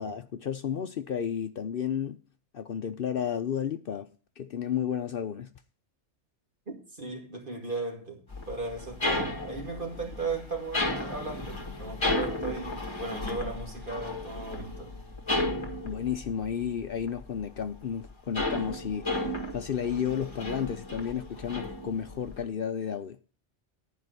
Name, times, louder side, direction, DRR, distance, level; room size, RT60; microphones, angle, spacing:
voice 1, 0.0-2.2 2.5-4.1 4.4-5.5 15.8-23.2, left 8 dB, 55° left, 0.8 m, -32 dB
voice 2, 6.7-14.9, right 3 dB, 45° right, 2.6 m, -37 dB
sound 1, 8.3-17.5 17.7-22.4, left 2 dB, 25° left, 1.8 m, -34 dB
11.5 x 5.0 x 8.0 m
omnidirectional pair, 1.2 m